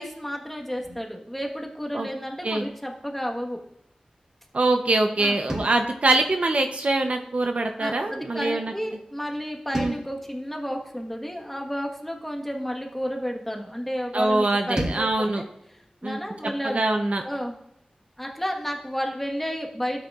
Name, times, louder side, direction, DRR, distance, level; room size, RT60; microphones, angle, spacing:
voice 1, 0.0-3.6 5.2-5.4 7.8-15.1 15.3-15.4 16.0-16.8 17.2-17.5 18.2-20.1, equal, 5° left, 0 dB, 1.3 m, -31 dB
voice 2, 4.5-8.7 9.7-10.0 14.1-15.4 16.0-17.2, right 2 dB, 60° right, 4 dB, 0.7 m, -24 dB
sound 1, 5.5-7.8 9.7-12.2 14.8-17.3, equal, 30° right, 3.6 m, -39 dB
12.0 x 7.9 x 2.4 m, 0.79 s
wide cardioid pair, 60°, 2 cm